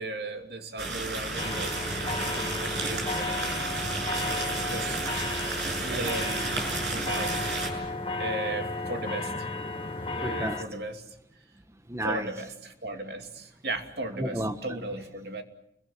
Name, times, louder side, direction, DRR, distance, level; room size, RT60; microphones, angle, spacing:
voice 1, 0.0-1.7 2.2-3.9 4.7-5.0 5.7-6.6 6.9-7.6 8.2-9.5 9.8-11.1 12.0-15.4, right 2 dB, 65° right, 2.7 m, -36 dB
sound 1, 0.8-7.7, right 3 dB, 90° right, 7.3 m, -32 dB
sound 2, 1.4-10.6, left 2 dB, 30° left, 1.8 m, -33 dB
voice 2, 4.2-5.0 5.3-5.9 10.2-10.6 11.9-12.3 14.2-14.6, right 1 dB, 15° right, 1.3 m, -34 dB
29.5 x 22.5 x 7.4 m
head